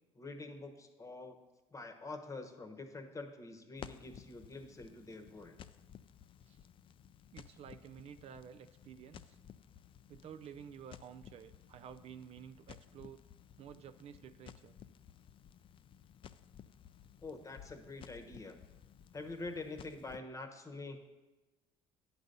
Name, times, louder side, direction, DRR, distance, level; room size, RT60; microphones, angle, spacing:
voice 1, 0.1-1.4 1.7-5.6 17.2-18.6 19.1-21.0, left 3 dB, 25° left, 7 dB, 1.0 m, -46 dB
Crackle, 3.8-20.2, left 9 dB, 40° left, 0.4 m, -56 dB
voice 2, 7.3-9.4 10.1-13.2 13.6-14.7, right 8 dB, 50° right, 9 dB, 0.4 m, -52 dB
9.5 x 4.0 x 6.6 m, 1.1 s
cardioid pair, 95°, 13 cm